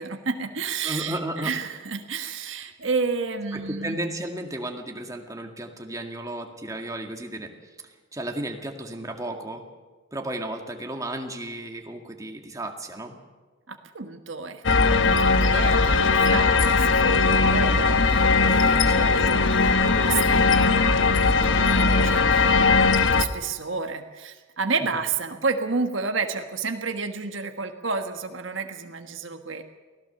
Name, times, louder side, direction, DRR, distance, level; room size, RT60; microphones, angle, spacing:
voice 1, 0.0-4.0 13.7-20.9 21.6-29.6, right 4 dB, 80° right, 6 dB, 1.4 m, -31 dB
voice 2, 0.8-1.5 3.5-7.5 8.1-9.6 10.1-13.1 18.9-19.4, right 1 dB, 20° right, 3 dB, 2.0 m, -34 dB
sound 1, 14.6-23.3, left 4 dB, 75° left, 1.0 m, -19 dB
24.0 x 16.5 x 6.9 m, 1.3 s
head